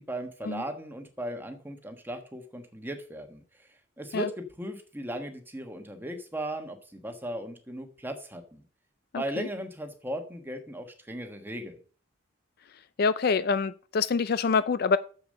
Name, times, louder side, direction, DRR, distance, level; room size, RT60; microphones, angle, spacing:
voice 1, 0.0-3.7 4.0-8.6 9.1-11.8, right 1 dB, 10° right, 1.3 m, -37 dB
voice 2, 9.1-9.5 13.0-15.0, left 5 dB, 50° left, 0.4 m, -26 dB
7.1 x 6.9 x 6.5 m
head